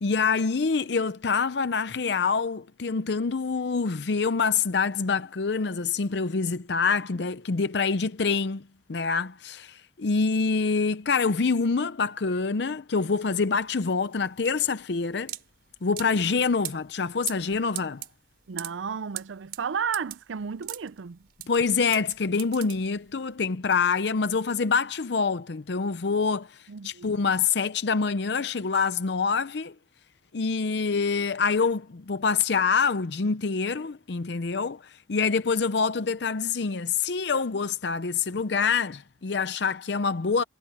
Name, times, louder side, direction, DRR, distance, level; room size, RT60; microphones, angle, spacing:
voice 1, 0.0-8.6 8.9-15.3 15.8-18.0 21.5-26.6 26.8-29.7 30.3-40.4, left 5 dB, 65° left, 0.6 m, -26 dB
sound 1, 13.4-23.3, right 14 dB, 55° right, 5.2 m, -40 dB
voice 2, 18.5-21.2 26.7-27.1, right 6 dB, 85° right, 0.5 m, -33 dB
head